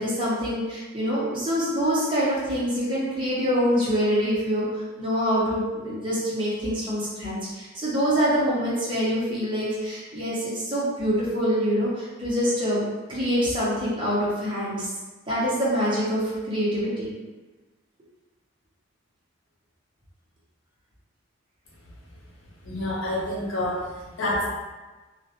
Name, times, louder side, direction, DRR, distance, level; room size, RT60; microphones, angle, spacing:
voice 1, 0.0-4.7 5.0-14.9 15.3-17.1, equal, 25° right, -9 dB, 0.8 m, -25 dB
voice 2, 22.6-24.5, left 1 dB, 75° left, -6 dB, 0.8 m, -28 dB
2.4 x 2.0 x 2.8 m, 1.2 s
head